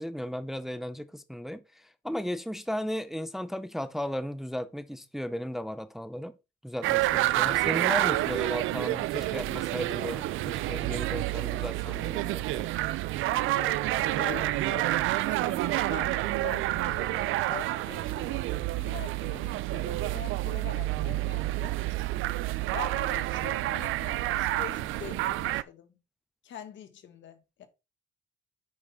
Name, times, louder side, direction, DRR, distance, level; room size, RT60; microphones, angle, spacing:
voice 1, 0.0-6.3 6.6-12.7, equal, ahead, 0.6 m, -35 dB
sound 1, 6.8-25.6, right 16 dB, 85° right, 0.4 m, -29 dB
voice 2, 13.1-13.9 14.1-21.7 22.7-25.9 26.4-27.7, left 9 dB, 70° left, 1.6 m, -44 dB
8.4 x 5.4 x 3.5 m
cardioid pair, 90°, 20 cm